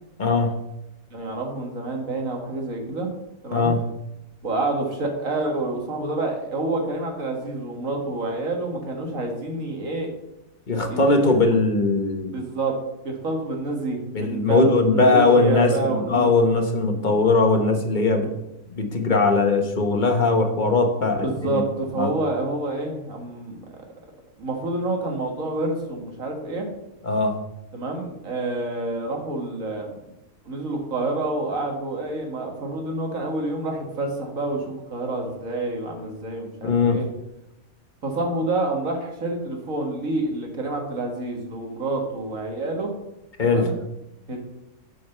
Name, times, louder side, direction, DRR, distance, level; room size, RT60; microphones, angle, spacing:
voice 1, 0.2-0.6 3.5-3.8 10.7-12.4 14.1-18.3 18.8-21.6 22.0-22.1 27.0-27.4 36.6-37.0 43.4-43.7, left 3 dB, 40° left, 5 dB, 1.1 m, -20 dB
voice 2, 1.1-3.1 3.4-3.7 4.4-10.1 10.9-11.3 12.3-12.8 13.0-16.3 21.1-23.6 24.4-26.7 27.7-30.0 30.5-37.1 38.0-42.9 43.4-43.7 44.3-44.4, right 2 dB, 80° right, 2 dB, 2.1 m, -28 dB
7.7 x 5.3 x 6.6 m, 0.89 s
omnidirectional pair, 1.4 m